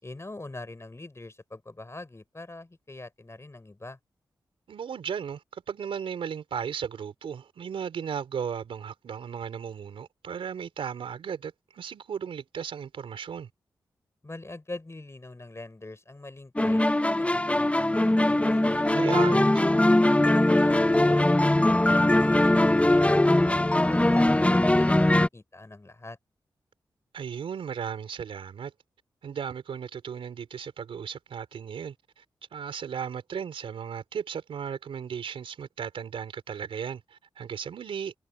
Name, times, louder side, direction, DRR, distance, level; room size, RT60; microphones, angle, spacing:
voice 1, 0.0-4.0 14.2-18.9 19.2-19.5 19.9-21.3 21.9-26.2, left 2 dB, 30° left, 5.8 m, -43 dB
voice 2, 4.7-13.5 18.9-19.6 27.1-28.7 29.2-32.2 32.5-38.1, right 7 dB, 90° right, 4.4 m, -35 dB
sound 1, 16.6-25.3, left 1 dB, 15° left, 0.8 m, -21 dB
cardioid pair, 45°, 9 cm